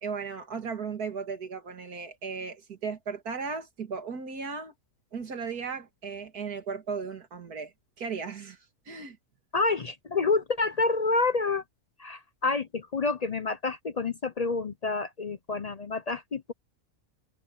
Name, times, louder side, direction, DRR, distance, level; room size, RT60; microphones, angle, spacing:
voice 1, 0.0-4.7 5.1-8.6 8.9-9.2, right 5 dB, 80° right, 2.5 m, -36 dB
voice 2, 9.5-11.6 12.0-16.5, left 3 dB, 55° left, 0.4 m, -28 dB
omnidirectional pair, 1.6 m